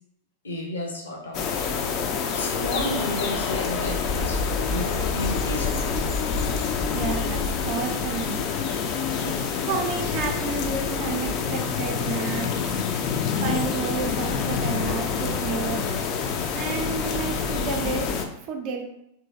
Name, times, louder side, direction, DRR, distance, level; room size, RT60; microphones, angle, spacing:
voice 1, 0.4-1.7 2.3-5.9 9.1-9.4, left 1 dB, 70° left, 0 dB, 0.7 m, -32 dB
sound 1, 1.3-18.3, left 6 dB, 40° left, 0.3 m, -27 dB
voice 2, 6.9-8.4 9.7-12.5 13.4-15.9 16.5-18.8, right 5 dB, 40° right, 3 dB, 0.4 m, -31 dB
3.0 x 2.6 x 2.6 m, 0.79 s
figure-of-eight pair, 90°, 0 cm